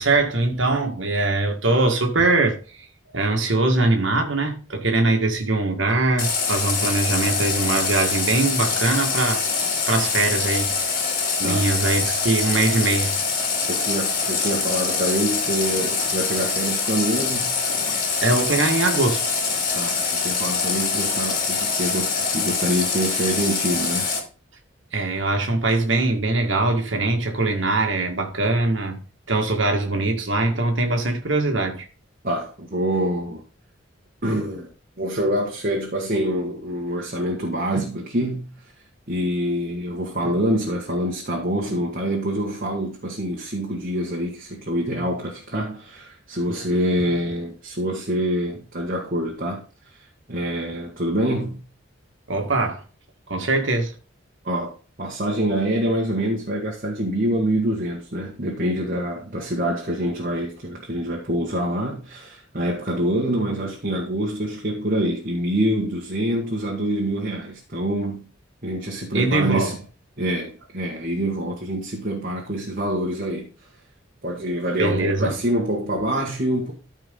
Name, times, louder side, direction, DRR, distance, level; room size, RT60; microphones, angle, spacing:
voice 1, 0.0-2.9 3.1-9.4 9.9-11.0 11.4-13.1 18.2-19.2 24.9-29.0 29.3-31.9 52.3-52.8 53.3-53.9 69.1-69.7 74.8-75.3, right 2 dB, 70° right, 1.8 m, -22 dB
Water tap faucet, 6.2-24.2, left 4 dB, 45° left, 2.7 m, -24 dB
voice 2, 13.7-17.5 19.7-24.1 32.2-33.4 34.2-34.7 35.0-38.5 39.1-49.6 49.9-51.6 54.4-68.3 68.6-69.8 70.2-73.5 74.2-76.7, right 1 dB, 45° right, 1.7 m, -26 dB
13.5 x 4.6 x 3.8 m
head